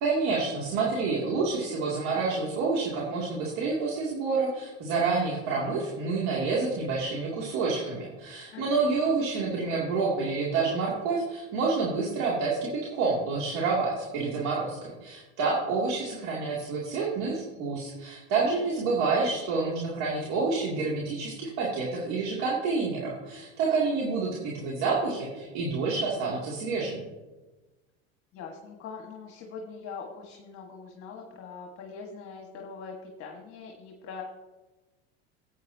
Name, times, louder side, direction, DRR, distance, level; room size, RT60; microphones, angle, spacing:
voice 1, 0.0-27.0, right 4 dB, 60° right, -5 dB, 2.6 m, -28 dB
voice 2, 18.6-19.0 28.3-34.2, left 5 dB, 45° left, 1 dB, 1.6 m, -42 dB
15.0 x 8.5 x 2.8 m, 1.2 s
supercardioid pair, 105°, 32 cm